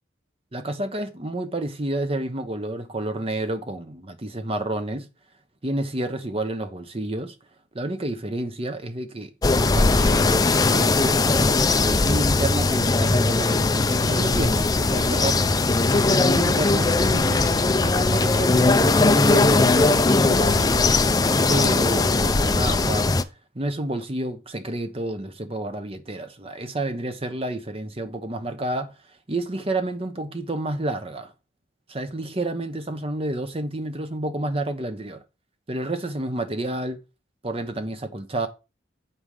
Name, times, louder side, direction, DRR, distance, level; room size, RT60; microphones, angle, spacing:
voice 1, 0.5-5.1 5.6-7.3 7.7-11.2 11.7-15.4 15.9-20.9 21.2-23.1 23.5-28.9 29.3-31.3 31.9-35.2 35.7-37.0 37.4-38.5, right 1 dB, 30° right, 1.0 m, -30 dB
bird ambience windier, 9.4-23.2, left 3 dB, 20° left, 0.5 m, -19 dB
8.0 x 5.5 x 4.9 m
head